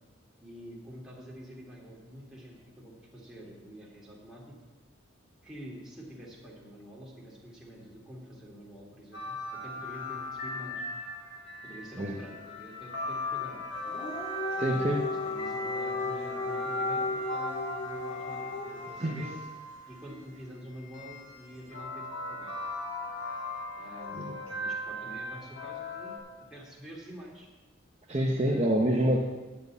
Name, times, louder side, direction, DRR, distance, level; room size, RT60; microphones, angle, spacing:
voice 1, 0.4-4.6 5.4-10.8 11.6-13.6 14.5-14.7 15.0-19.4 19.9-22.6 23.8-26.2 26.5-27.5 28.4-28.9, equal, 5° right, -5 dB, 2.3 m, -47 dB
sound 1, 9.1-20.0 20.9-26.2, left 2 dB, 65° left, 2.3 m, -38 dB
Dog, 13.8-19.0, left 2 dB, 35° left, 2.2 m, -35 dB
voice 2, 14.6-15.1 19.0-19.2 24.1-24.3 28.1-29.2, right 1 dB, 30° right, -2 dB, 0.8 m, -26 dB
10.5 x 5.5 x 8.3 m, 1.2 s
head